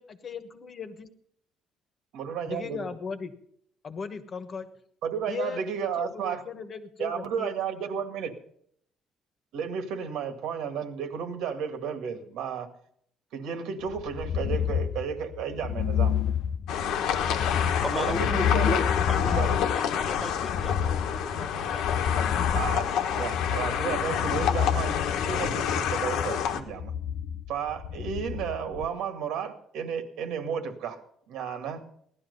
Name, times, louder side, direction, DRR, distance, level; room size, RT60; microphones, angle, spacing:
voice 1, 0.0-1.1 2.5-3.3 3.8-4.7 5.3-5.6 6.0-7.5, left 5 dB, 35° left, 10 dB, 1.3 m, -37 dB
voice 2, 2.1-2.9 5.0-6.4 7.0-8.3 9.5-12.7 13.3-16.2 18.0-18.8 19.1-19.6 22.5-25.0 25.2-26.9 27.5-31.0 31.3-31.8, right 7 dB, 85° right, 7 dB, 2.0 m, -33 dB
sound 1, 13.9-28.9, left 8 dB, 60° left, 0.5 m, -30 dB
sound 2, 16.7-26.6, left 8 dB, 85° left, 1.3 m, -28 dB
voice 3, 17.8-18.2 18.7-19.3 19.7-22.2, equal, ahead, 6 dB, 0.8 m, -36 dB
17.0 x 12.0 x 5.4 m, 0.67 s
cardioid pair, 160°, 0 cm